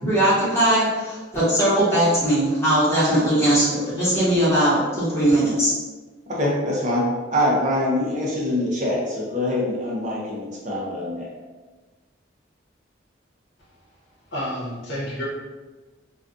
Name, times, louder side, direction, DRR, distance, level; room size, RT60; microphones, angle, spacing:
voice 1, 0.0-5.7, right 1 dB, 15° left, -12 dB, 0.9 m, -20 dB
voice 2, 6.3-11.3, left 1 dB, 40° right, -4 dB, 0.6 m, -24 dB
voice 3, 14.3-15.2, equal, 60° left, -7 dB, 0.8 m, -29 dB
2.3 x 2.3 x 2.5 m, 1.3 s
head